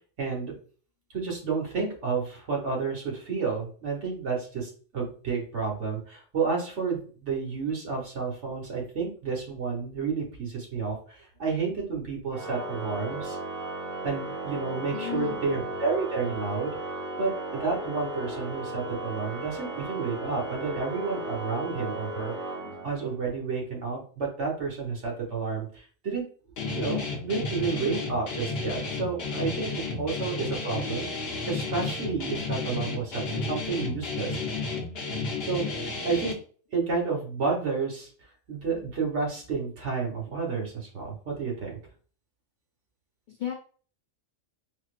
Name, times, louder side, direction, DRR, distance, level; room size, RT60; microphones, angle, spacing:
voice 1, 0.2-0.6 1.1-13.4 14.0-16.8 17.2-22.5 22.8-26.2 26.7-34.4 35.4-35.7 36.0-36.4 36.7-38.1 38.5-41.8, right 5 dB, 60° right, -1 dB, 1.5 m, -31 dB
Organ, 12.3-23.3, right 1 dB, 85° right, 1.2 m, -35 dB
voice 2, 14.9-15.4 22.6-22.7 43.3-43.5, left 11 dB, 75° left, 2 dB, 0.4 m, -34 dB
Guitar, 26.6-36.3, left 3 dB, 55° left, 0.9 m, -32 dB
4.2 x 2.8 x 2.4 m, 0.42 s
omnidirectional pair, 1.3 m